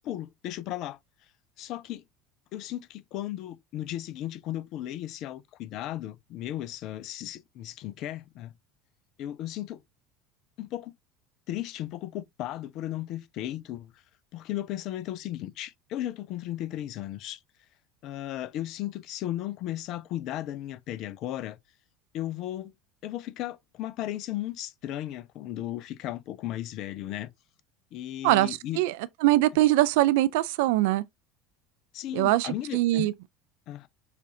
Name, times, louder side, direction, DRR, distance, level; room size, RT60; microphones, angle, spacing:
voice 1, 0.0-1.0 1.6-2.0 2.5-8.5 9.2-9.8 10.6-10.9 11.5-13.9 14.3-17.4 18.0-21.6 22.1-22.7 23.0-27.3 27.9-28.8 31.9-33.1 33.7-33.9, left 13 dB, 55° left, 0.4 m, -35 dB
voice 2, 28.2-31.0 32.1-33.1, right 17 dB, 65° right, 0.3 m, -23 dB
6.6 x 2.5 x 2.7 m
figure-of-eight pair, 70°, 0 cm